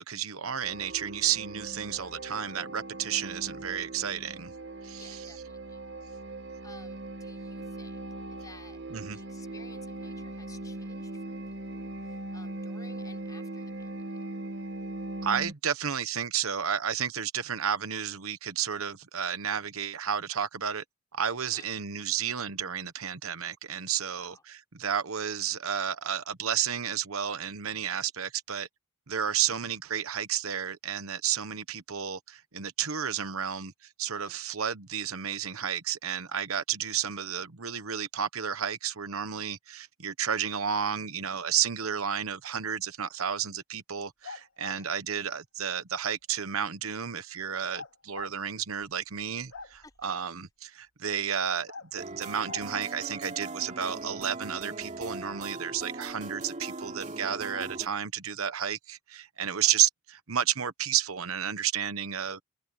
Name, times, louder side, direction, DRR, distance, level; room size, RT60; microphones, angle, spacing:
voice 1, 0.0-4.5 4.8-5.3 8.9-9.2 15.2-20.8 21.1-28.7 29.1-33.7 34.0-62.4, right 8 dB, 75° right, 1.1 m, -32 dB
sound 1, 0.6-15.5, right 2 dB, 55° right, 1.4 m, -40 dB
voice 2, 1.8-2.2 5.0-5.8 6.6-8.1 8.4-8.8 9.1-14.0 21.4-21.7 24.0-24.4 34.1-34.4 44.7-44.8 49.8-49.9 59.6-59.8, left 3 dB, 15° left, 5.4 m, -55 dB
sound 2, 44.2-44.8 47.7-48.3 48.8-48.9 49.2-50.0 51.7-51.9 52.5-52.7 56.1-56.2 57.2-57.7, left 4 dB, 75° left, 2.7 m, -43 dB
sound 3, 52.0-57.9, right 2 dB, 35° right, 2.9 m, -40 dB
head